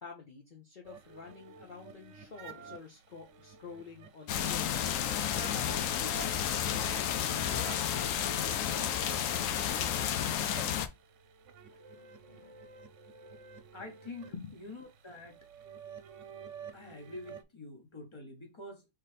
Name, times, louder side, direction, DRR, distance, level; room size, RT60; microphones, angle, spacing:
voice 1, 0.0-4.8 5.4-6.2 6.7-6.9 11.7-12.6 13.4-13.5 14.3-14.5, left 5 dB, 40° left, 1.0 m, -48 dB
sound 1, 0.8-17.4, right 6 dB, 70° right, 1.0 m, -51 dB
sound 2, 4.3-10.9, left 9 dB, 85° left, 1.0 m, -31 dB
voice 2, 13.7-15.5 16.7-18.9, left 2 dB, 25° left, 1.2 m, -46 dB
4.1 x 3.8 x 3.3 m
omnidirectional pair, 1.3 m